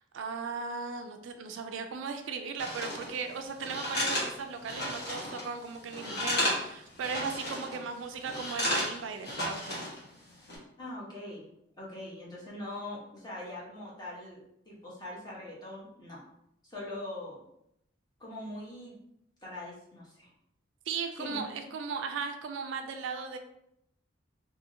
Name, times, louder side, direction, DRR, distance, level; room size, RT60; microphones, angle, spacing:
voice 1, 0.1-9.8 20.9-23.4, right 5 dB, 70° right, 6 dB, 0.3 m, -37 dB
sound 1, 2.6-3.1 3.6-5.5 5.7-6.7 7.0-7.8 8.3-10.0 10.3-10.6, left 1 dB, 55° left, 1.0 m, -33 dB
voice 2, 10.8-11.5 11.8-14.4 14.7-16.2 16.6-17.4 18.2-19.0 19.4-20.3 21.2-21.4, left 1 dB, 20° left, -6 dB, 0.9 m, -42 dB
2.7 x 2.7 x 2.5 m, 0.77 s
head